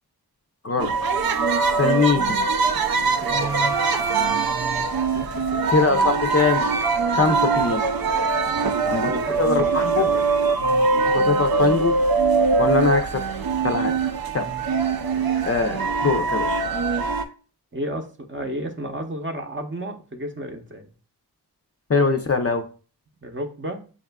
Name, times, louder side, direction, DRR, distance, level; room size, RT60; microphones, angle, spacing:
sound 1, 0.8-17.3, right 4 dB, 60° right, 0.5 m, -22 dB
voice 1, 1.8-2.4 5.7-6.7 7.1-7.8 8.9-9.1 9.4-10.1 10.6-11.9 12.6-13.2 13.6-13.9 14.3-14.5 15.4-16.6 21.9-22.6, left 4 dB, 35° left, 6 dB, 0.6 m, -22 dB
voice 2, 2.9-3.8 4.2-4.5 5.1-5.2 8.5-10.2 17.7-20.9 23.2-23.8, right 1 dB, 30° right, 3 dB, 0.7 m, -33 dB
7.0 x 2.4 x 2.2 m, 0.37 s
cardioid pair, 50°, 41 cm